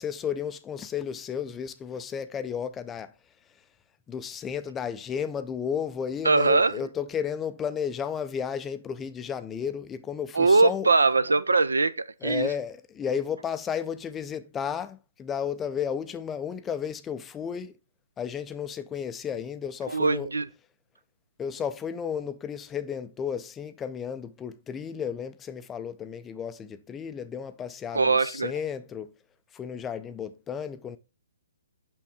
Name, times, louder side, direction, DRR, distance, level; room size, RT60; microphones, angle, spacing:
voice 1, 0.0-3.1 3.5-3.6 4.1-10.9 12.2-17.7 18.2-20.3 21.4-29.1 29.5-31.0, left 7 dB, 15° left, 0.4 m, -33 dB
voice 2, 6.2-6.7 10.3-12.5 19.9-20.5 27.9-28.5, right 3 dB, 80° right, 0.5 m, -22 dB
6.2 x 5.7 x 3.5 m
figure-of-eight pair, 135°, 0 cm